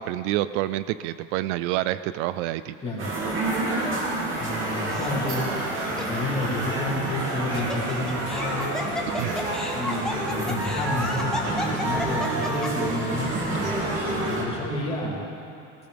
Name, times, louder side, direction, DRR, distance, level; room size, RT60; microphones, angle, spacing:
voice 1, 0.0-2.8 9.2-9.4, right 14 dB, 80° right, 14 dB, 0.5 m, -27 dB
sound 1, 3.0-14.4, right 2 dB, 35° right, 2.7 m, -28 dB
voice 2, 4.4-8.8 9.7-13.7 14.2-15.2, left 2 dB, 15° left, -5 dB, 2.7 m, -30 dB
Laughter, 4.9-5.4 6.0-6.1 7.3-12.9, left 1 dB, ahead, 0.9 m, -33 dB
18.5 x 17.5 x 3.5 m, 2.6 s
cardioid pair, 170°, 35 cm